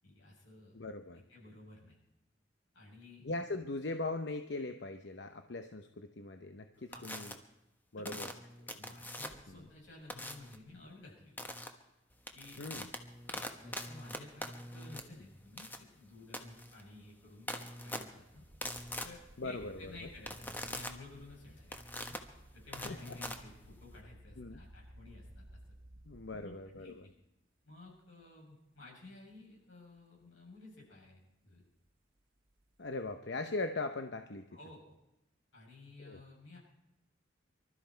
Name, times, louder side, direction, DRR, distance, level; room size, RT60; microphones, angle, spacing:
voice 1, 0.0-0.8 1.1-2.0 2.7-3.3 6.9-7.1 8.0-8.2 8.8-11.5 12.3-12.6 13.3-18.4 19.0-21.8 22.1-22.2 22.5-25.6 26.4-27.1 27.7-31.7 34.5-35.0 35.5-36.6, left 2 dB, 85° left, -2 dB, 7.5 m, -54 dB
voice 2, 0.7-1.2 3.2-7.4 7.9-8.3 9.5-9.6 12.6-12.9 19.4-20.1 22.7-23.2 24.4-24.6 26.1-27.0 32.8-34.5 36.0-36.2, left 2 dB, 65° left, 7 dB, 0.8 m, -40 dB
sound 1, 6.9-7.3 8.0-9.5 10.1-10.6 11.4-11.7 12.1-24.0, left 1 dB, 10° left, 1.3 m, -43 dB
sound 2, 18.3-27.1 27.8-28.2 28.8-28.9 32.5-33.1, right 1 dB, 50° right, 1.2 m, -57 dB
25.0 x 13.0 x 4.5 m, 0.92 s
head